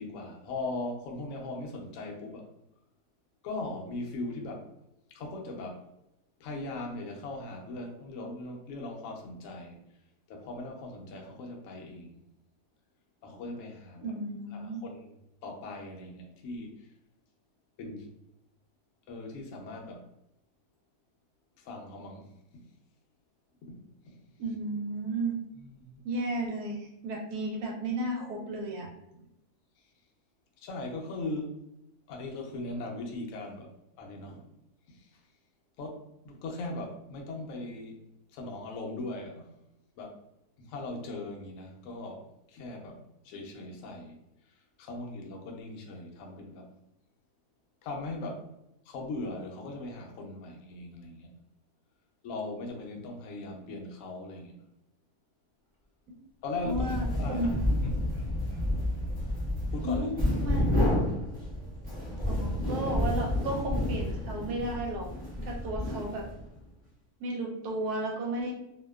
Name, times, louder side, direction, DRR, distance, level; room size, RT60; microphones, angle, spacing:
voice 1, 0.0-2.5 3.4-4.7 5.1-5.8 6.4-9.8 10.3-12.2 13.2-14.1 14.5-15.2 15.4-16.9 17.8-18.1 19.1-20.1 21.6-22.3 23.6-23.8 24.1-24.2 25.5-26.0 30.6-31.6 32.1-34.4 34.9-35.2 35.8-38.0 38.3-39.5 40.0-40.2 40.6-44.2 44.8-46.7 47.8-48.5 48.9-51.3 52.2-54.6 56.4-57.5 57.8-57.9 59.7-60.2 62.2-62.4, left 2 dB, 70° left, 0 dB, 0.8 m, -39 dB
voice 2, 14.0-14.8 24.4-25.4 26.0-28.9 56.1-56.2 56.6-57.6 59.8-60.1 60.4-60.7 62.3-65.1 65.4-66.3 67.2-68.5, right 1 dB, 75° right, 1 dB, 1.1 m, -33 dB
sound 1, 56.6-66.5, left 1 dB, 10° right, 0.4 m, -30 dB
2.7 x 2.1 x 2.2 m, 0.85 s
omnidirectional pair, 1.7 m